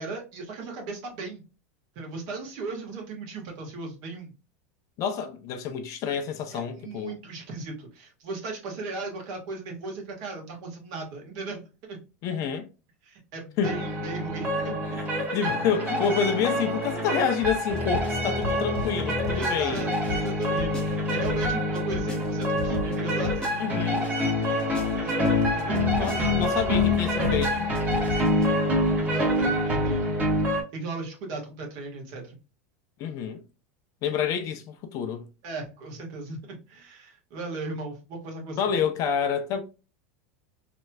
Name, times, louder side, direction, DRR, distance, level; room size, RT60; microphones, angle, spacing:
voice 1, 0.0-1.4 2.0-4.3 6.5-12.0 13.0-15.0 19.3-23.8 24.4-26.4 29.1-30.1 30.5-32.4 35.4-38.6, right 3 dB, 55° right, 1.6 m, -37 dB
voice 2, 5.0-7.2 12.2-12.7 13.6-13.8 15.0-15.1 15.3-19.9 23.6-24.0 26.0-27.7 28.0-28.1 33.0-33.4 34.0-35.2 38.6-39.6, left 7 dB, 45° left, 0.6 m, -28 dB
sound 1, 13.6-30.6, left 1 dB, 20° right, 1.3 m, -26 dB
sound 2, 17.2-24.0 24.4-28.5, left 1 dB, 10° left, 0.9 m, -36 dB
3.3 x 2.9 x 2.2 m
supercardioid pair, 130°, 8 cm